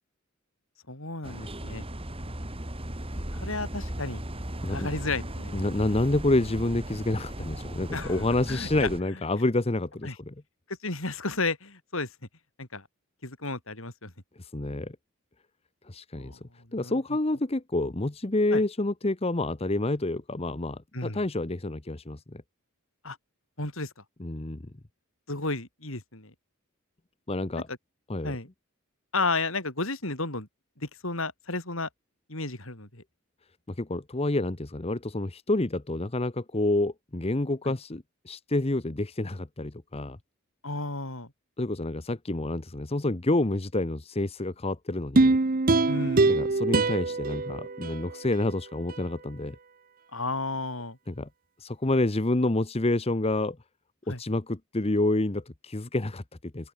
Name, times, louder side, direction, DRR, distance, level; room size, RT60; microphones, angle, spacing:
voice 1, 0.9-1.8 3.3-4.2 4.7-5.5 7.9-8.2 8.5-8.9 10.0-10.2 10.8-12.1 12.6-12.8 13.2-14.1 16.2-16.4 16.8-16.9 18.5-18.6 20.9-21.2 23.0-23.2 23.6-23.9 25.3-26.3 27.5-27.6 28.2-28.5 29.1-30.5 30.8-31.9 32.3-33.0 37.7-37.8 40.6-41.3 45.9-46.3 50.1-51.0 54.1-54.2, left 3 dB, 65° left, 6.1 m, -32 dB
sound 1, 1.2-9.0, right 1 dB, 25° right, 3.5 m, -37 dB
voice 2, 5.5-10.3 14.4-15.0 15.8-16.4 16.7-22.4 24.2-24.7 27.3-27.7 28.1-28.4 33.8-40.2 41.6-45.4 46.3-49.6 51.1-51.3 51.6-53.6 54.1-56.7, left 2 dB, 30° left, 1.0 m, -28 dB
sound 2, 45.2-48.5 48.9-49.0, right 3 dB, 40° right, 0.8 m, -24 dB
open air
head